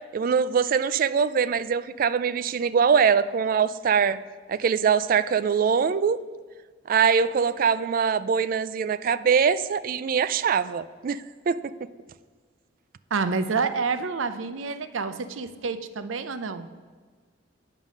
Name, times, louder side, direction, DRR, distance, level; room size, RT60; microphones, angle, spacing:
voice 1, 0.1-4.2 4.5-6.2 6.9-11.7, right 6 dB, 45° right, 15 dB, 0.3 m, -23 dB
voice 2, 13.1-16.7, right 4 dB, 85° right, 11 dB, 0.6 m, -28 dB
9.2 x 5.3 x 6.4 m, 1.5 s
head